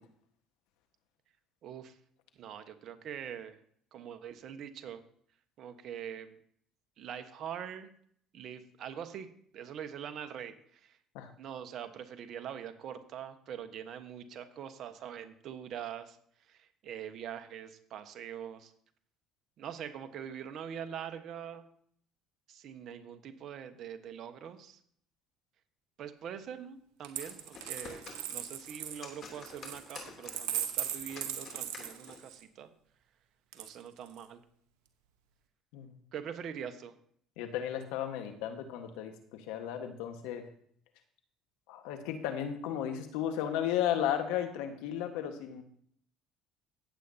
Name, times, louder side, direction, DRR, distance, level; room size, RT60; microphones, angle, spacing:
voice 1, 1.6-1.9 2.4-3.6 3.9-5.0 5.6-6.3 7.0-7.9 8.3-9.3 9.5-11.0 11.4-16.2 16.5-18.7 19.6-21.7 22.5-24.8 26.0-32.7 33.5-34.4 36.1-36.9, right 8 dB, 60° right, 9 dB, 1.2 m, -43 dB
sound 1, 27.0-32.3, left 4 dB, 50° left, 3.0 m, -50 dB
Coin (dropping), 27.0-32.4 33.5-34.2, right 10 dB, 75° right, 1.0 m, -38 dB
voice 2, 37.4-40.4 41.7-45.6, left 10 dB, 75° left, 6 dB, 1.4 m, -34 dB
16.5 x 8.1 x 2.8 m, 0.62 s
hypercardioid pair, 70°, 0 cm